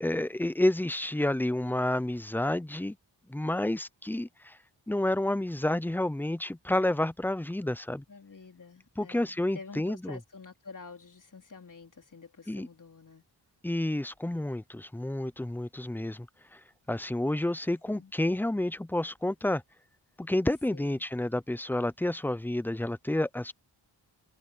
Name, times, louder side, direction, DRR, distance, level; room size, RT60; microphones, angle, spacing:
voice 1, 0.0-3.0 3.3-4.6 4.9-8.0 9.0-10.2 12.5-12.7 13.6-16.3 16.5-16.6 16.9-19.6 20.2-23.5, left 1 dB, 5° left, 0.4 m, -30 dB
voice 2, 8.1-13.2 17.9-18.1 20.7-21.0, left 4 dB, 45° left, 3.7 m, -48 dB
wide cardioid pair, 110°, 42 cm